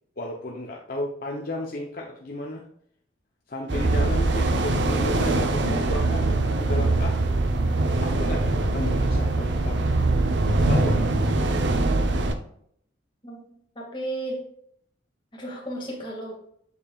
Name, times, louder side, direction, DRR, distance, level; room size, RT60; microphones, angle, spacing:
voice 1, 0.2-2.6 3.5-7.2 8.0-9.9 10.6-11.3, left 1 dB, 50° left, -1 dB, 0.8 m, -34 dB
sound 1, 3.7-12.3, right 2 dB, 65° right, 0.8 m, -23 dB
voice 2, 13.8-14.4 15.3-16.4, right 1 dB, 25° left, -3 dB, 2.1 m, -33 dB
8.3 x 6.8 x 2.4 m, 0.67 s
head